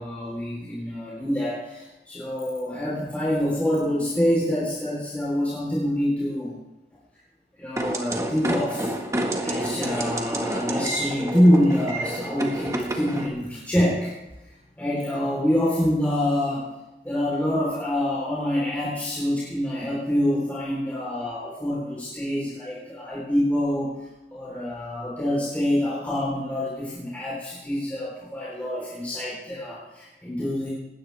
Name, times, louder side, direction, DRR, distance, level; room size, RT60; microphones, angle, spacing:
voice 1, 0.0-6.5 7.6-9.0 9.4-14.1 14.4-16.8 17.0-30.7, left 1 dB, 10° left, -7 dB, 3.9 m, -26 dB
sound 1, 7.8-13.3, right 1 dB, 15° right, 1.7 m, -29 dB
20.0 x 17.0 x 3.5 m, 1.0 s
head